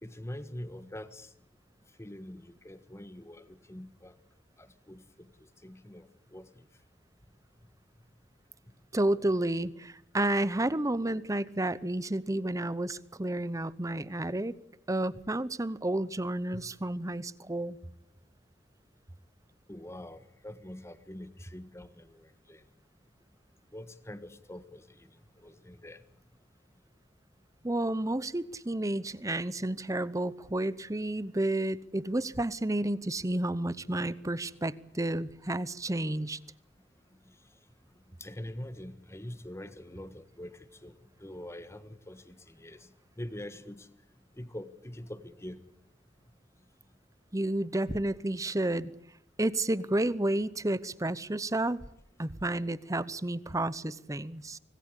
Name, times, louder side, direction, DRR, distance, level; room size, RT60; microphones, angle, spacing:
voice 1, 0.0-1.3 2.0-4.1 4.6-5.3 5.6-6.5 16.5-16.6 19.7-22.6 23.7-25.1 25.4-26.0 38.2-40.9 41.2-42.8 43.2-43.9 44.4-45.6, left 1 dB, 15° left, 12 dB, 1.5 m, -44 dB
voice 2, 8.9-14.6 14.9-17.8 27.6-36.4 47.3-48.9 49.4-51.8 52.2-54.6, right 1 dB, 20° right, 18 dB, 0.8 m, -31 dB
25.5 x 19.0 x 8.3 m, 0.72 s
head